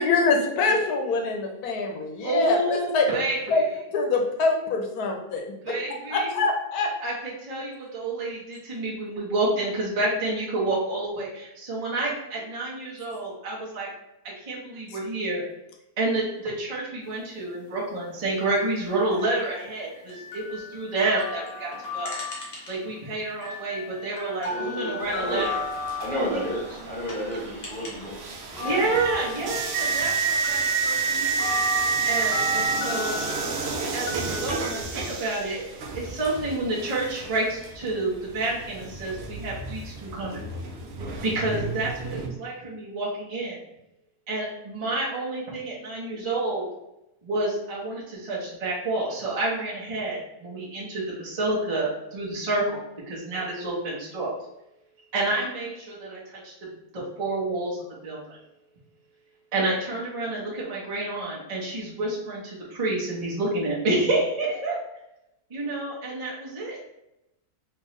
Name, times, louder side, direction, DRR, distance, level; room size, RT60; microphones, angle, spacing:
voice 1, 0.0-3.1 3.5-3.6 3.9-5.8 6.1-6.9, left 4 dB, 75° left, 2 dB, 1.2 m, -24 dB
voice 2, 2.2-3.6 5.6-6.4 7.0-13.9 14.2-15.4 16.0-22.2 22.7-25.6 26.3-26.4 28.6-31.5 32.0-33.2 33.9-35.6 35.9-40.4 41.2-43.6 44.3-46.6 47.2-52.8 53.1-54.3 55.1-58.4 59.5-64.8 65.5-66.8, right 2 dB, 25° right, -6 dB, 1.0 m, -29 dB
sound 1, 18.4-23.0 23.3-28.2 28.4-34.8, left 3 dB, 45° left, 1.1 m, -35 dB
voice 3, 24.5-25.5 26.0-28.8, equal, 5° left, -7 dB, 1.1 m, -32 dB
sound 2, 25.0-42.3, right 5 dB, 65° right, 0.6 m, -30 dB
3.6 x 3.1 x 3.1 m, 0.88 s
omnidirectional pair, 1.7 m